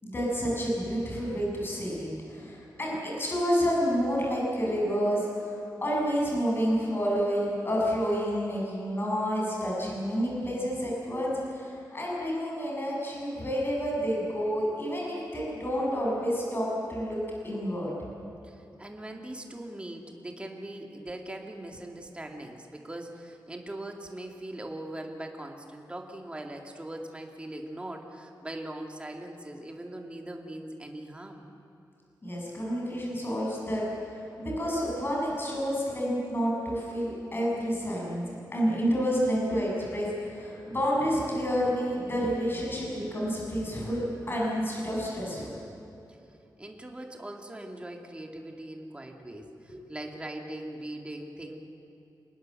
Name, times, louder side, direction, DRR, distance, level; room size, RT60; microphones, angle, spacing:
voice 1, 0.0-5.5 5.8-17.2 17.4-17.9 32.2-34.1 34.4-45.5 49.2-49.4 49.7-49.8, equal, 30° left, -3 dB, 7.1 m, -29 dB
voice 2, 18.4-31.4 46.6-51.6, right 1 dB, 15° right, 2 dB, 2.2 m, -41 dB
26.5 x 19.5 x 7.7 m, 2.8 s
wide cardioid pair, 165°, 7 cm